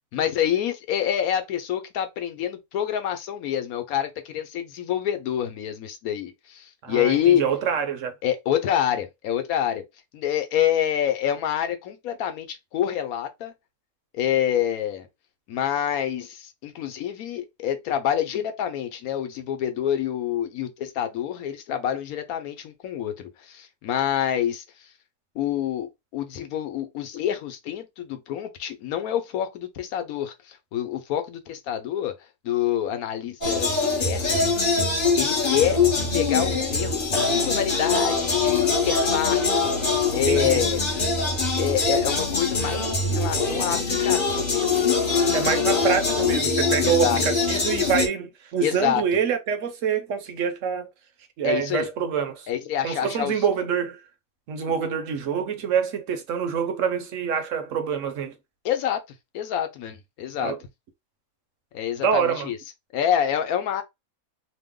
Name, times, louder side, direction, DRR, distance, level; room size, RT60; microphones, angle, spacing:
voice 1, 0.1-7.4 8.2-9.8 10.1-13.5 14.1-15.1 15.5-24.6 25.3-32.1 32.4-34.5 35.2-35.8 36.1-40.9 41.6-45.0 46.8-47.2 48.6-49.0 51.4-51.9 52.5-53.4 54.6-54.9 58.6-59.0 59.3-60.5 61.7-62.6 62.9-63.8, left 10 dB, 90° left, 1.1 m, -27 dB
voice 2, 6.8-8.1 40.1-40.6 45.3-50.9 51.4-52.5 52.8-54.0 54.5-58.4 60.4-60.6 62.0-62.5, right 7 dB, 65° right, 1.0 m, -26 dB
sound 1, 33.4-48.1, left 4 dB, 40° left, 1.0 m, -23 dB
3.0 x 2.1 x 3.6 m
omnidirectional pair, 1.5 m